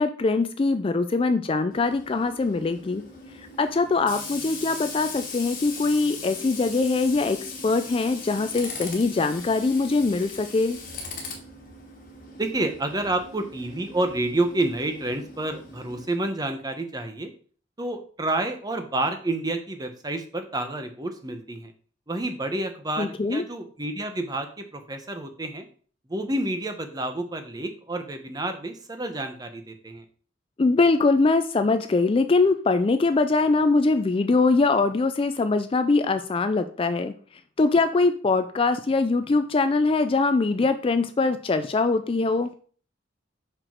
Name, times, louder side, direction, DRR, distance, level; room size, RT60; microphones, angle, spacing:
voice 1, 0.0-3.0 3.6-7.4 7.6-10.8 23.0-23.4 30.6-37.1 37.6-42.5, left 3 dB, 30° left, 9 dB, 0.4 m, -22 dB
Tools, 1.7-16.1, left 3 dB, 45° left, 1.4 m, -39 dB
voice 2, 12.4-17.3 17.8-21.7 22.1-25.7 26.1-30.0, right 2 dB, 20° right, 6 dB, 0.9 m, -29 dB
5.9 x 4.9 x 4.4 m, 0.44 s
head